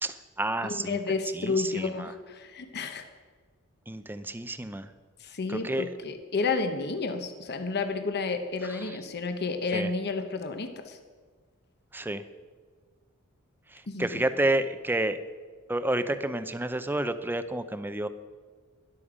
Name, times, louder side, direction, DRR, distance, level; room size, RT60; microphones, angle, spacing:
voice 1, 0.0-1.0 1.3-2.1 3.9-4.9 5.5-5.9 8.8-9.0 9.7-9.9 11.9-12.2 13.7-15.2 15.7-18.1, right 1 dB, 10° right, 11 dB, 0.6 m, -30 dB
voice 2, 0.6-3.0 5.2-11.0 13.9-14.2, left 4 dB, 50° left, 7 dB, 1.0 m, -31 dB
12.5 x 11.5 x 5.0 m, 1.5 s
head